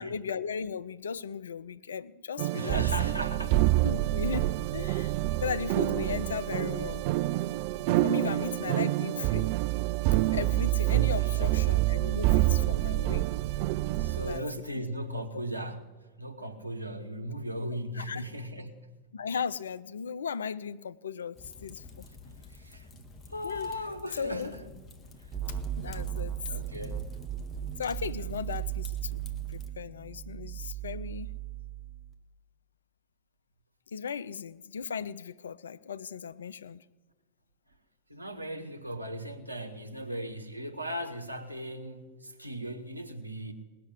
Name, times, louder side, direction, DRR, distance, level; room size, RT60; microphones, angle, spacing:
voice 1, 0.0-2.8 3.8-5.1 5.4-7.0 8.0-9.5 10.3-13.3 14.2-14.8 15.3-15.4 17.6-18.2 19.1-22.0 23.4-23.7 24.1-24.5 25.5-26.4 27.8-29.2 29.5-31.3 33.9-36.8, left 6 dB, 70° left, 0.5 m, -36 dB
sound 1, 2.4-14.4, right 17 dB, 50° right, 0.4 m, -27 dB
voice 2, 2.6-3.6 7.7-7.8 8.2-8.4 11.2-11.5 14.0-15.8 16.2-18.8 22.5-22.9 23.3-24.7 25.2-25.3 25.5-25.6 26.4-27.1 28.2-28.3 38.1-43.5, equal, 85° right, 1.3 m, -37 dB
Fire, 21.3-29.7, left 3 dB, 20° left, 1.6 m, -50 dB
sound 2, 25.3-32.1, right 11 dB, 25° right, 1.9 m, -37 dB
19.0 x 6.8 x 9.8 m
figure-of-eight pair, 90°, 0 cm